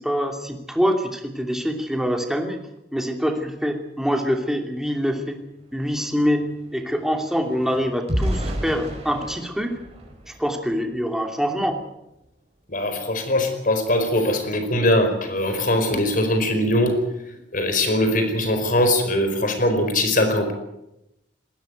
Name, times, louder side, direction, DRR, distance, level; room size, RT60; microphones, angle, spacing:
voice 1, 0.0-2.6 2.9-5.4 5.7-6.4 6.7-9.7 10.3-11.8, equal, 5° right, 3 dB, 2.8 m, -24 dB
sound 1, 5.1-5.2 5.5-11.0 11.5-11.7 12.1-12.3, equal, 35° right, 5.1 m, -32 dB
voice 2, 12.7-17.0 17.5-20.5, left 1 dB, 50° left, 7 dB, 4.8 m, -21 dB
20.0 x 17.0 x 9.3 m, 0.89 s
head